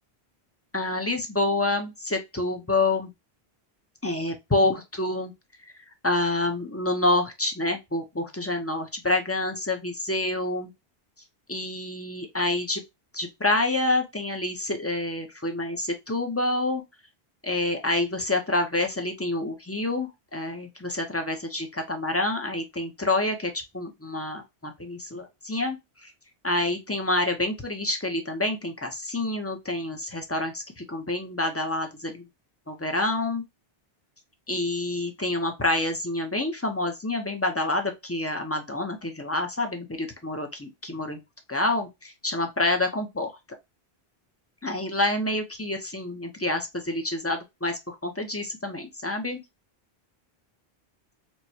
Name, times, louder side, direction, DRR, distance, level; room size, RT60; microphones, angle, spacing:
voice 1, 0.7-3.1 4.0-5.3 6.0-10.7 11.5-12.8 13.1-16.8 17.4-25.8 26.0-26.1 26.4-32.2 32.7-33.4 34.5-41.2 41.5-43.3 44.6-49.4, left 2 dB, 15° left, 0.5 m, -27 dB
4.5 x 2.2 x 2.7 m
omnidirectional pair, 1.0 m